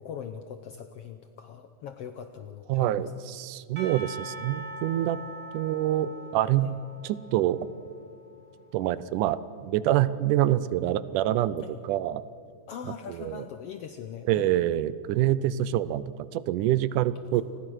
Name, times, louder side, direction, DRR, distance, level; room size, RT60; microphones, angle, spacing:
voice 1, 0.0-3.1 6.6-6.8 11.6-11.8 12.7-14.5 17.3-17.4, left 8 dB, 75° left, 8 dB, 1.4 m, -41 dB
voice 2, 2.7-5.2 5.5-6.7 7.0-7.6 8.7-12.2 13.2-13.4 14.3-17.4, right 13 dB, 80° right, 17 dB, 2.2 m, -26 dB
Percussion / Church bell, 3.8-8.8, right 1 dB, 40° right, 3.6 m, -43 dB
28.5 x 20.5 x 6.3 m, 2.2 s
omnidirectional pair, 3.7 m